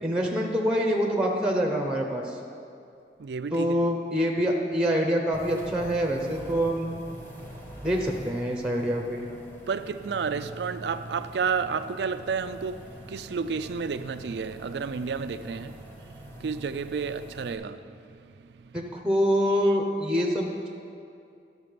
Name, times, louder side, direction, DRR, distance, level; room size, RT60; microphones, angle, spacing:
voice 1, 0.0-2.4 3.5-6.9 7.8-9.2 18.7-20.7, equal, 5° right, 0.8 m, -25 dB
voice 2, 3.2-3.8 9.7-18.7, right 5 dB, 75° right, 0.4 m, -31 dB
sound 1, 5.3-17.5, right 1 dB, 10° left, 1.2 m, -45 dB
12.5 x 6.6 x 5.1 m
head